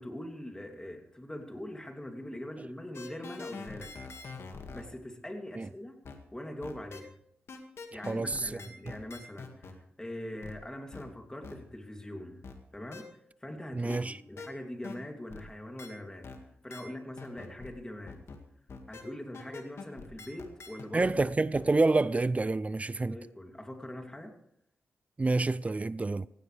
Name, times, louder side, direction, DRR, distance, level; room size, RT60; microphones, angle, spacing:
voice 1, 0.0-3.9 4.7-6.0 6.3-7.1 7.9-12.4 12.7-18.2 18.9-21.2 23.1-24.3, left 1 dB, 15° left, 2.8 m, -42 dB
sound 1, 2.9-4.8 6.0-6.2 6.6-7.0 7.5-9.7 10.4-10.5 10.9-11.0 11.4-11.6 12.4-12.5 12.9-13.0 13.9-14.0 14.4-14.5 14.8-15.0 15.3-15.4 15.8-15.9 16.2-16.4 16.7-16.8 17.2-17.7 18.1-18.4 18.7-19.0 19.3-21.3 21.5-21.6, left 4 dB, 70° left, 2.0 m, -44 dB
voice 2, 8.1-8.4 13.7-14.1 20.9-23.2 25.2-26.3, right 3 dB, 30° right, 0.5 m, -27 dB
18.0 x 16.0 x 3.4 m
cardioid pair, 60°, 5 cm